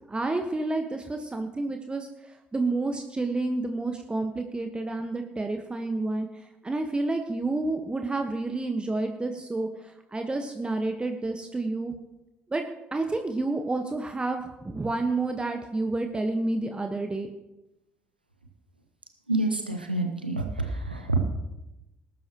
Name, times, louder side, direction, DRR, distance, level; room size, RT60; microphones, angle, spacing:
voice 1, 0.1-2.1 2.5-6.3 6.6-9.7 10.1-11.9 12.5-12.6 12.9-17.3, right 2 dB, 20° right, 5 dB, 1.2 m, -29 dB
voice 2, 19.3-21.2, right 2 dB, 90° right, 5 dB, 1.1 m, -27 dB
20.0 x 11.0 x 3.0 m, 0.94 s
figure-of-eight pair, 50°, 5 cm